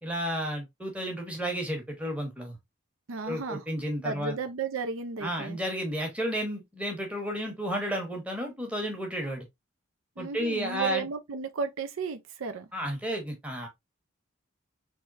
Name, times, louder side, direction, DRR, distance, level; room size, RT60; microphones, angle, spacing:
voice 1, 0.0-2.6 3.3-4.3 5.2-9.4 10.2-11.1 12.7-13.7, equal, 5° right, 1.1 m, -32 dB
voice 2, 3.1-3.7 4.0-5.6 10.2-12.7, right 5 dB, 75° right, 0.5 m, -34 dB
3.6 x 3.2 x 2.5 m
head